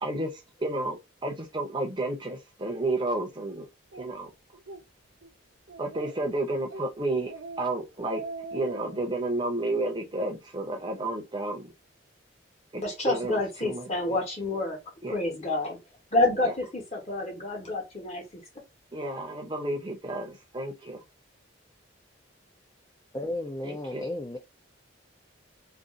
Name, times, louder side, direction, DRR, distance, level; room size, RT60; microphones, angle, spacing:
voice 1, 0.0-3.6 4.0-4.3 5.8-7.3 7.6-8.2 8.5-11.7 12.7-13.9 15.0-15.2 18.9-21.0 23.6-24.0, right 2 dB, 25° right, 0.6 m, -31 dB
Speech, 3.9-4.1 4.5-4.8 5.2-5.3 5.7-6.3 6.7-6.9 7.2-7.6 7.9-9.0, right 3 dB, 85° right, 0.8 m, -41 dB
voice 2, 12.8-14.8 15.1-15.8 16.1-18.4, left 2 dB, 35° left, 1.0 m, -28 dB
voice 3, 23.1-24.4, left 1 dB, 20° left, 0.3 m, -33 dB
2.5 x 2.4 x 3.6 m
head